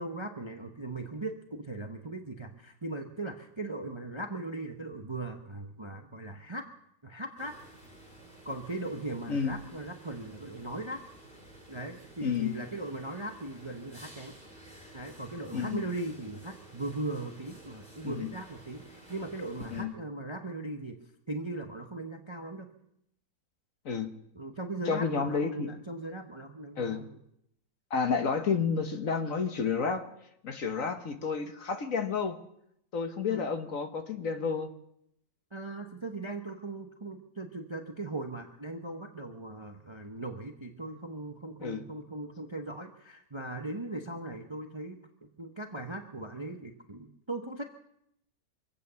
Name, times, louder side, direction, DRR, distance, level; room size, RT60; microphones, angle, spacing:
voice 1, 0.0-6.7 7.0-7.6 8.4-11.0 11.7-14.3 14.9-21.0 21.3-22.7 24.3-27.2 33.3-33.5 35.5-47.6, right 2 dB, 20° right, 5 dB, 0.8 m, -39 dB
sound 1, 7.4-19.8, right 1 dB, 5° left, 3.5 m, -53 dB
voice 2, 12.2-12.5 15.5-15.8 18.0-18.3 19.7-19.9 23.8-24.1 24.9-25.7 26.8-27.0 27.9-30.0 30.4-32.4 32.9-34.7 41.6-41.8, left 5 dB, 50° left, 7 dB, 1.4 m, -30 dB
24.5 x 8.5 x 6.9 m, 0.77 s
omnidirectional pair, 1.9 m